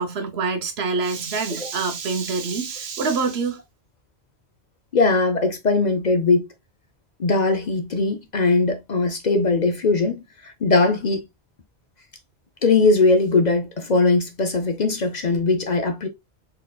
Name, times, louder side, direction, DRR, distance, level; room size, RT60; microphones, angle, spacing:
voice 1, 0.0-3.6, right 4 dB, 70° right, 1.1 m, -26 dB
voice 2, 4.9-6.5 7.2-11.2 12.6-16.1, left 3 dB, 45° left, 0.7 m, -20 dB
4.4 x 3.8 x 2.2 m
omnidirectional pair, 1.1 m